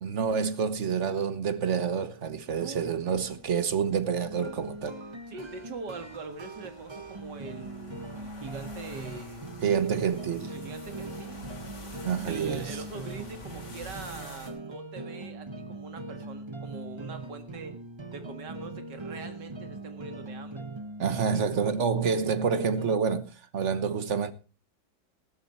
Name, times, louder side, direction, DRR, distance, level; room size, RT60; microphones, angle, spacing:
voice 1, 0.0-5.0 9.6-10.5 12.0-12.7 21.0-24.3, right 6 dB, 45° right, 1.3 m, -28 dB
voice 2, 2.5-2.9 5.3-9.6 10.5-11.4 12.2-17.8 18.1-20.7, right 5 dB, 80° right, 2.4 m, -43 dB
sound 1, 3.1-14.5, left 2 dB, 45° left, 3.2 m, -49 dB
sound 2, 4.2-23.0, right 2 dB, 25° right, 0.6 m, -41 dB
14.5 x 13.0 x 4.3 m
omnidirectional pair, 1.9 m